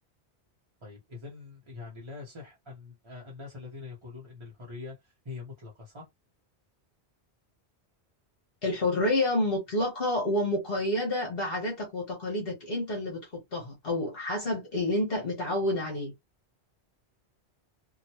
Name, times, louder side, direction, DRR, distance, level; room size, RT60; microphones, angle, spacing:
voice 1, 0.8-6.1, left 4 dB, 30° right, 0.8 m, -44 dB
voice 2, 8.6-16.1, left 1 dB, 60° left, 1.2 m, -29 dB
2.9 x 2.4 x 2.7 m
omnidirectional pair, 1.1 m